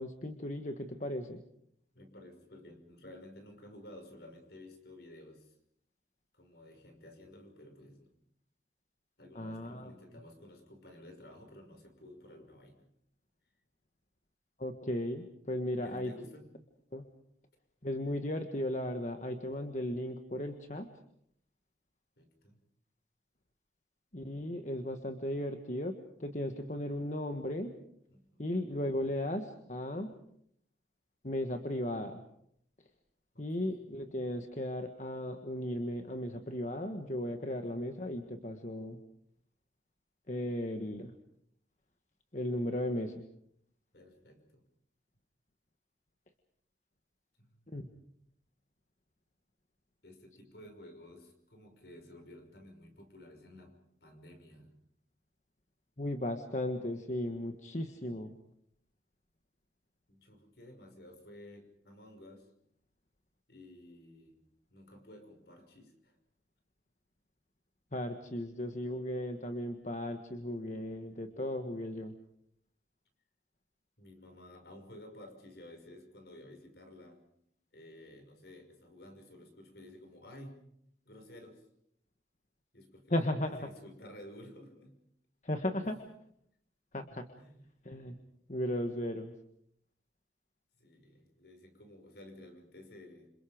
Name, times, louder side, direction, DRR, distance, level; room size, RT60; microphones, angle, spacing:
voice 1, 0.0-1.4 9.3-9.9 14.6-16.1 16.9-17.1 17.8-20.9 24.1-27.7 28.4-30.1 31.2-32.2 33.4-39.0 40.3-41.1 42.3-43.2 47.7-47.9 56.0-58.3 67.9-72.2 83.1-83.7 85.4-86.0 86.9-87.3 87.8-88.2 88.5-89.3, left 1 dB, 40° left, 6 dB, 1.5 m, -36 dB
voice 2, 1.9-5.6 6.3-8.1 9.2-12.9 15.8-16.5 22.2-22.6 25.2-25.3 28.1-28.5 33.3-33.8 43.9-44.6 47.4-47.5 50.0-54.7 60.1-62.5 63.5-64.4 64.7-66.2 74.0-77.2 77.7-80.6 81.0-81.7 82.7-85.0 85.8-86.0 87.4-87.6 88.6-88.8 90.8-93.3, left 1 dB, 60° left, 5 dB, 5.9 m, -53 dB
28.0 x 27.5 x 5.2 m, 0.72 s
head